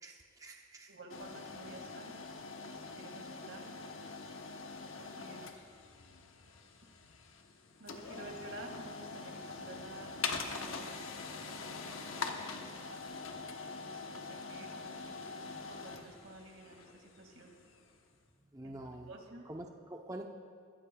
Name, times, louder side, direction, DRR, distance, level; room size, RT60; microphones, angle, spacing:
voice 1, 0.0-0.9 18.5-19.1 19.5-20.2, right 1 dB, 15° right, 1 dB, 0.7 m, -46 dB
voice 2, 0.9-2.1 2.9-3.8 5.0-5.6 7.8-11.1 11.4-13.0 13.7-17.6 18.6-18.8 19.1-19.5, right 2 dB, 75° right, 2 dB, 2.1 m, -52 dB
sound 1, 1.1-18.0, left 4 dB, 80° left, 1.0 m, -44 dB
24.0 x 14.0 x 2.3 m, 2.4 s
head